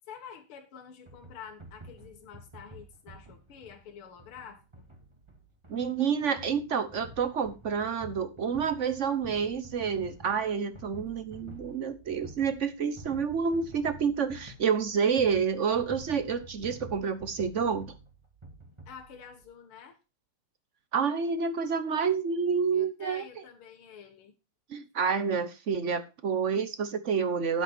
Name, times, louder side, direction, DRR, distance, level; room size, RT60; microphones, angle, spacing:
voice 1, 0.1-4.9 18.9-20.0 22.7-24.3, left 7 dB, 85° left, 2.2 m, -48 dB
sound 1, 1.1-19.4, right 2 dB, 15° right, 1.8 m, -49 dB
voice 2, 5.7-17.9 20.9-23.2 24.7-27.6, right 6 dB, 55° right, 0.8 m, -29 dB
10.0 x 8.0 x 4.3 m
omnidirectional pair, 2.3 m